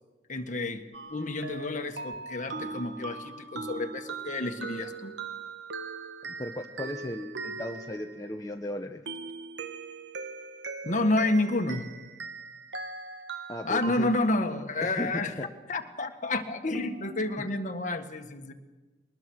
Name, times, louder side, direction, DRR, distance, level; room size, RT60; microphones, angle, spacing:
voice 1, 0.3-5.1 10.8-11.9 13.6-15.3 15.7-18.5, left 2 dB, 45° left, 6 dB, 1.6 m, -30 dB
sound 1, 0.9-8.5 9.1-14.7 16.7-17.5, right 4 dB, 80° right, 1.2 m, -40 dB
voice 2, 6.2-9.0 13.5-14.2 14.8-15.5, left 1 dB, 20° left, 3 dB, 0.8 m, -36 dB
22.5 x 19.5 x 6.3 m, 1.2 s
head